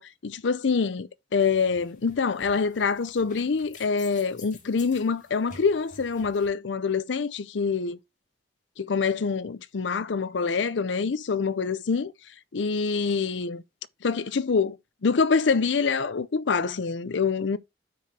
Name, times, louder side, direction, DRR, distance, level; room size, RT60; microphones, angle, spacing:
voice 1, 0.0-8.0 8.8-12.1 12.5-13.6 14.0-14.8 15.0-17.6, left 5 dB, 80° left, 0.5 m, -25 dB
sound 1, 1.4-6.5, left 3 dB, 40° left, 1.9 m, -50 dB
13.0 x 4.8 x 2.8 m
head